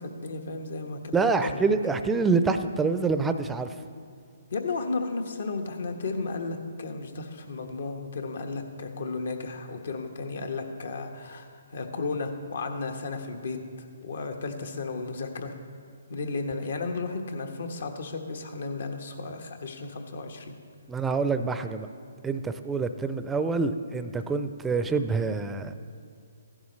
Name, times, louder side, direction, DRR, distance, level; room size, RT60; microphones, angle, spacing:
voice 1, 0.0-1.6 4.5-13.6 14.0-15.5 16.1-20.5, left 3 dB, 70° left, 5 dB, 1.2 m, -34 dB
voice 2, 1.1-3.7 20.9-21.9 22.2-25.7, right 4 dB, 10° right, 9 dB, 0.5 m, -26 dB
15.5 x 11.5 x 3.2 m, 2.2 s
hypercardioid pair, 145°, 0 cm